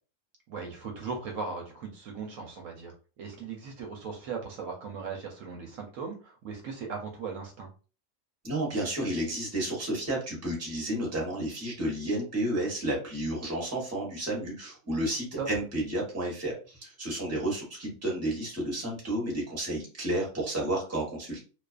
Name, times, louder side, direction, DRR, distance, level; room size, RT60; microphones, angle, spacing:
voice 1, 0.5-7.7 15.4-15.5, right 5 dB, 70° right, 1 dB, 0.9 m, -38 dB
voice 2, 8.4-21.4, right 1 dB, 15° right, -2 dB, 0.7 m, -31 dB
2.4 x 2.4 x 2.3 m, 0.35 s
omnidirectional pair, 1.5 m